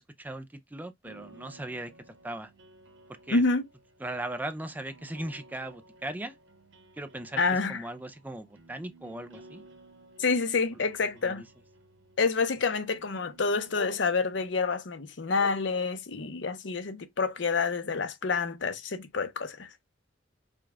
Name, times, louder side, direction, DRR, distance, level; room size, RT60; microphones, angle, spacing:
voice 1, 0.0-2.5 3.3-3.4 4.0-6.4 7.0-9.6 11.2-11.4, right 1 dB, 10° right, 0.4 m, -38 dB
sound 1, 1.0-14.7, right 2 dB, 80° right, 1.2 m, -56 dB
voice 2, 3.3-3.7 7.4-7.8 10.2-11.4 12.2-19.7, left 4 dB, 70° left, 0.7 m, -28 dB
5.1 x 2.3 x 3.4 m
head